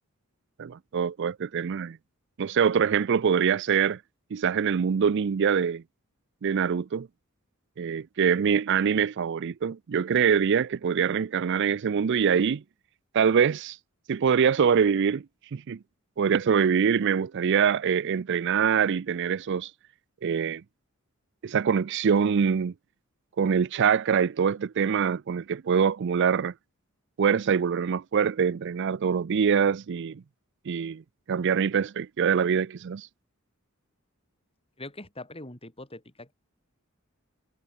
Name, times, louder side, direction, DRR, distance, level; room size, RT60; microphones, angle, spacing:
voice 1, 0.6-2.0 2.4-4.0 4.3-5.8 6.4-7.1 7.8-12.6 13.1-13.8 14.1-15.2 15.5-15.8 16.2-19.7 20.2-20.6 21.4-22.7 23.4-26.5 27.2-30.2 30.7-31.0 31.3-33.1, right 7 dB, 55° right, 0.4 m, -24 dB
voice 2, 34.8-36.3, left 2 dB, 25° left, 7.4 m, -42 dB
head